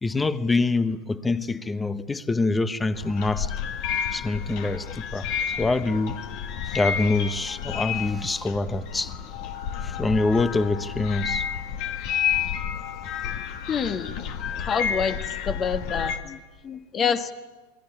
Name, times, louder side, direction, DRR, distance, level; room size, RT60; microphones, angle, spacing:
voice 1, 0.0-3.5 4.1-6.3 6.6-9.2 9.8-11.5, left 3 dB, 15° left, 1.1 m, -25 dB
sound 1, 2.9-16.2, left 8 dB, 55° left, 2.1 m, -30 dB
voice 2, 13.7-14.2 14.6-17.3, left 6 dB, 30° left, 1.6 m, -27 dB
28.0 x 20.5 x 8.8 m
hypercardioid pair, 100°, 0 cm